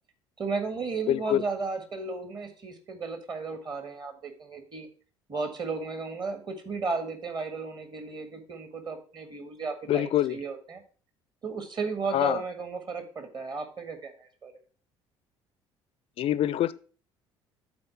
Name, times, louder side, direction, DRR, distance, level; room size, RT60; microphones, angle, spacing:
voice 1, 0.4-4.9 5.3-10.8 11.4-14.5, right 4 dB, 30° right, 7 dB, 1.6 m, -34 dB
voice 2, 1.1-1.4 9.9-10.4 12.1-12.4 16.2-16.7, left 12 dB, 40° left, 17 dB, 0.4 m, -25 dB
8.7 x 4.1 x 5.7 m, 0.40 s
figure-of-eight pair, 55°, 15 cm